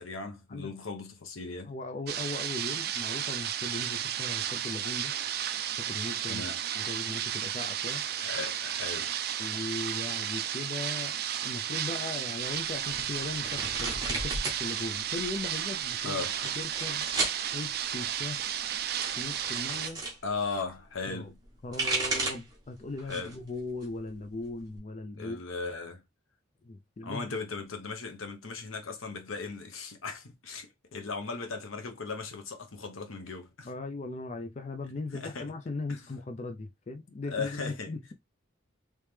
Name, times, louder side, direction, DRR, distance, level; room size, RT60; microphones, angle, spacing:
voice 1, 0.0-1.7 6.3-6.6 8.2-9.1 16.0-16.4 20.2-21.4 23.0-23.3 25.2-26.0 27.0-33.7 35.1-35.5 35.9-36.0 37.3-37.9, left 4 dB, 85° left, 0.9 m, -37 dB
voice 2, 1.6-5.1 5.8-6.4 6.8-8.0 9.4-11.2 11.4-16.2 16.6-17.1 17.5-18.5 19.2-20.0 21.1-21.3 21.6-25.4 26.6-27.3 33.6-38.1, left 2 dB, 35° left, 0.4 m, -38 dB
sound 1, 2.1-19.9, right 10 dB, 50° right, 0.3 m, -33 dB
sound 2, 12.8-14.6 14.9-15.6 16.2-17.4 18.4-20.2 21.4-22.5 23.0-23.4 23.8-24.8, right 2 dB, 20° right, 1.2 m, -34 dB
3.2 x 3.2 x 3.2 m
head